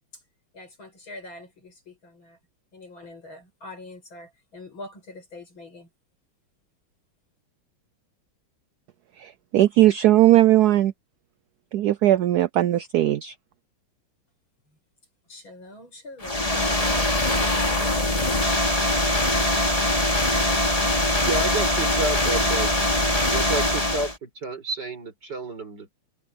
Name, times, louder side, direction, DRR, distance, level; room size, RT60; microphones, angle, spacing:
voice 1, 0.5-2.4 2.7-5.9 14.7-14.8 15.3-17.3, left 2 dB, 75° left, 8.8 m, -44 dB
voice 2, 9.2-10.9 11.7-13.3, right 14 dB, 75° right, 0.9 m, -18 dB
sound 1, 16.2-24.2, left 1 dB, 15° left, 3.1 m, -22 dB
voice 3, 21.2-22.7 23.3-25.9, right 3 dB, 55° right, 5.5 m, -30 dB
omnidirectional pair, 2.2 m